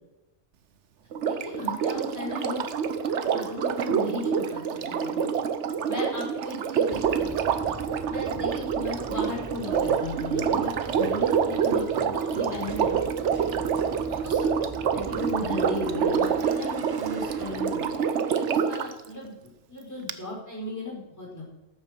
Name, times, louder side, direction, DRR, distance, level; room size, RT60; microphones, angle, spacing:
Sink (filling or washing), 1.1-18.9 20.1-20.2, right 7 dB, 80° right, 1.1 m, -27 dB
voice 1, 1.2-2.6 3.3-5.2 5.8-7.3 8.0-13.0 13.3-13.6 14.1-14.5 14.9-21.4, left 2 dB, 15° left, -4 dB, 4.7 m, -36 dB
sound 1, 6.9-18.3, right 4 dB, 25° right, 0.6 m, -43 dB
13.0 x 8.9 x 6.6 m, 1.0 s
omnidirectional pair, 1.2 m